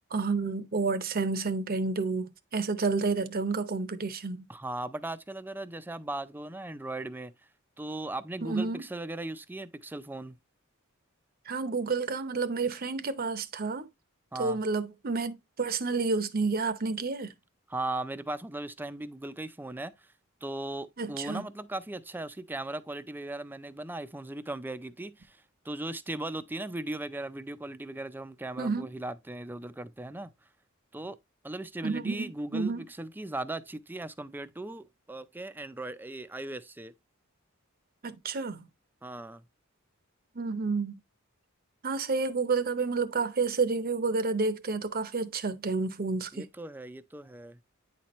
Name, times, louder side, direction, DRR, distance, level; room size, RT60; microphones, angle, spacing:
voice 1, 0.1-4.5 8.4-8.8 11.5-13.9 14.4-17.3 21.0-21.5 28.6-28.9 31.8-32.9 38.0-38.7 40.3-41.0 41.8-46.5, right 4 dB, 45° right, 0.7 m, -30 dB
voice 2, 4.5-7.3 7.8-10.4 14.3-14.6 17.7-20.1 20.4-30.3 30.9-31.2 31.4-36.9 39.0-39.4 46.3-47.6, right 2 dB, 10° right, 0.4 m, -38 dB
9.2 x 4.4 x 3.0 m
head